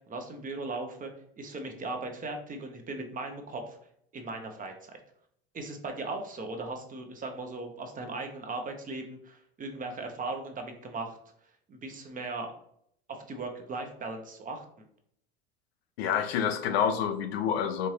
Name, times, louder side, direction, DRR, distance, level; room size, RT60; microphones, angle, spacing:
voice 1, 0.1-1.1 1.4-3.8 4.1-5.0 5.5-11.2 11.7-12.5 13.1-14.9, right 3 dB, 25° right, 4 dB, 0.8 m, -38 dB
voice 2, 16.0-17.9, left 8 dB, 85° left, 8 dB, 0.6 m, -28 dB
4.4 x 2.7 x 3.2 m, 0.69 s
supercardioid pair, 100°, 30 cm